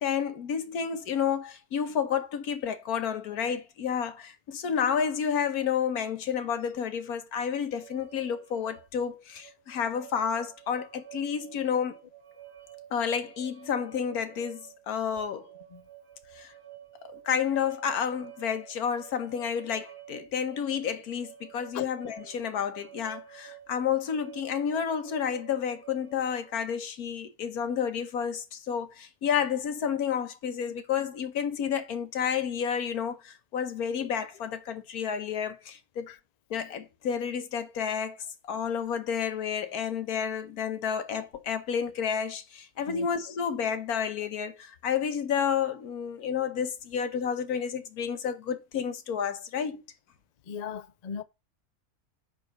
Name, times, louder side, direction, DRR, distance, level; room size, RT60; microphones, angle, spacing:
voice 1, 0.0-12.0 12.9-15.5 16.3-16.5 17.1-36.1 36.5-38.2 38.5-49.8, left 7 dB, 80° left, 1.5 m, -30 dB
sound 1, 7.8-26.5, right 13 dB, 50° right, 1.1 m, -50 dB
voice 2, 50.5-51.2, left 7 dB, 55° left, 0.4 m, -37 dB
9.6 x 3.7 x 6.4 m
omnidirectional pair, 1.6 m